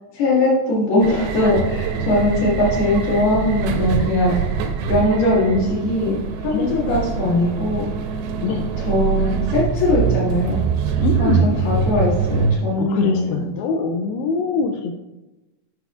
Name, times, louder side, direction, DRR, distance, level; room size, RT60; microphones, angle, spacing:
voice 1, 0.1-4.4 4.9-7.9 8.8-10.6 11.2-13.5, left 1 dB, 65° left, -11 dB, 3.6 m, -20 dB
sound 1, 1.0-12.6, right 6 dB, 85° right, 2.8 m, -23 dB
voice 2, 6.5-6.9 8.4-8.6 11.0-11.5 12.8-14.9, left 4 dB, 85° left, 4 dB, 2.2 m, -23 dB
10.0 x 6.1 x 2.4 m, 1.0 s
omnidirectional pair, 5.0 m